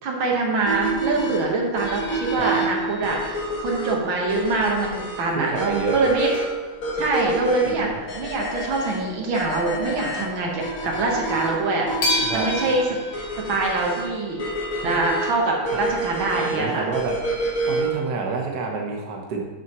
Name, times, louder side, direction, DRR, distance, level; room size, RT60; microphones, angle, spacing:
voice 1, 0.0-6.3 6.9-7.9 8.1-12.8 13.5-14.4 14.8-16.9, right 3 dB, 85° right, -1 dB, 2.2 m, -24 dB
sound 1, 0.7-18.1, right 2 dB, 45° left, 2.1 m, -29 dB
sound 2, 1.8-4.4 4.8-4.9 5.5-5.6 5.8-5.9 6.3-8.4 8.8-9.1 9.4-9.5 10.1-10.3 10.7-10.8 12.0-15.0 16.2-16.3 16.6-16.7, left 1 dB, 65° left, 1.7 m, -33 dB
voice 2, 5.3-6.0 7.6-7.9 12.2-12.5 14.8-14.9 15.7-15.8 16.3-17.1 17.7-19.4, right 4 dB, 55° right, 0 dB, 1.5 m, -28 dB
12.5 x 6.9 x 3.1 m, 1.3 s
omnidirectional pair, 2.1 m